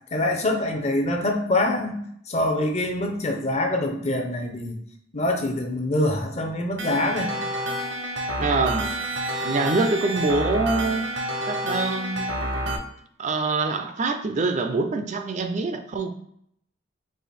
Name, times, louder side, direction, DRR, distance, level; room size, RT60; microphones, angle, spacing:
voice 1, 0.1-2.0 2.3-4.8 5.1-7.3, left 1 dB, 35° left, 0.7 m, -25 dB
sound 1, 6.8-12.8, right 1 dB, 70° right, 0.7 m, -28 dB
voice 2, 8.4-8.9 9.4-11.1 11.5-12.3 13.2-16.1, right 3 dB, 40° right, 0.4 m, -25 dB
4.9 x 2.5 x 4.1 m
head